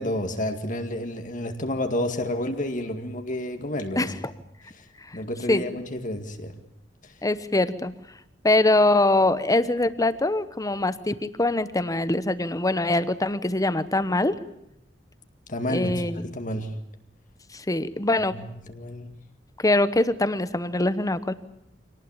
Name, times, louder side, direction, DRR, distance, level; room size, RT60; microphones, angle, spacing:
voice 1, 0.0-4.1 4.8-4.9 5.1-6.5 15.5-15.9 16.2-16.7 18.3-19.1, left 1 dB, 45° left, 6 dB, 2.1 m, -30 dB
voice 2, 4.0-4.3 5.1-5.2 5.5-5.6 7.2-7.9 8.4-14.3 15.7-16.3 17.5-18.3 19.6-21.3, left 2 dB, 20° left, 14 dB, 1.0 m, -23 dB
25.5 x 19.0 x 9.0 m, 0.78 s
head